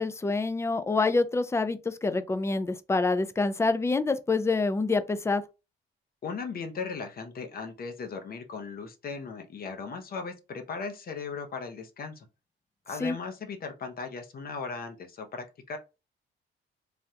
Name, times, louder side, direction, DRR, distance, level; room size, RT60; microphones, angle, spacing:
voice 1, 0.0-5.4 13.0-13.2, left 3 dB, 15° left, 0.4 m, -26 dB
voice 2, 6.2-12.3 12.9-15.8, left 5 dB, 50° left, 0.7 m, -37 dB
3.3 x 2.3 x 2.7 m
cardioid pair, 90°, 20 cm